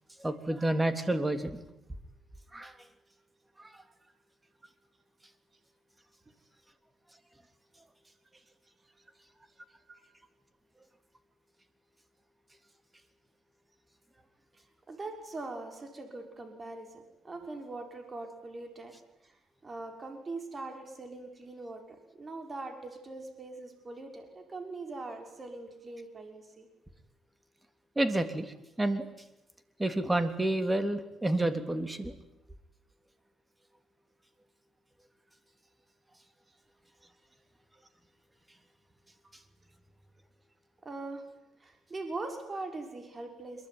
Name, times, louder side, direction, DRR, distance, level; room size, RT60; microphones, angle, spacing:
voice 1, 0.2-1.6 2.5-2.7 3.6-3.7 27.9-29.1 29.8-32.1, right 1 dB, 15° right, 9 dB, 3.4 m, -29 dB
voice 2, 14.9-18.9 19.2-19.4 19.6-26.7 40.8-41.2 41.6-43.7, right 2 dB, 30° right, 5 dB, 6.0 m, -42 dB
26.5 x 23.0 x 9.8 m, 0.90 s
cardioid pair, 90°, 0 cm